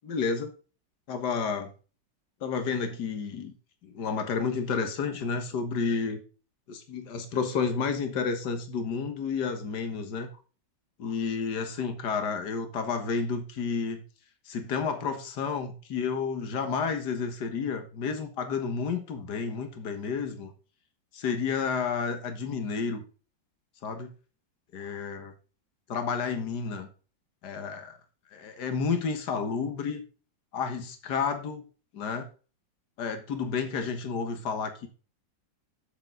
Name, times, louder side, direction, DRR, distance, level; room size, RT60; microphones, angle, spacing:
voice 1, 0.0-0.5 1.1-1.7 2.4-3.5 3.8-6.2 6.7-10.3 11.0-14.0 14.5-20.5 21.1-23.0 23.8-24.1 24.7-25.3 25.9-26.9 27.4-27.9 28.3-30.0 30.5-31.7 31.9-32.3 33.0-34.9, left 5 dB, 65° left, 7 dB, 1.9 m, -31 dB
8.1 x 6.9 x 3.8 m, 0.36 s
omnidirectional pair, 2.0 m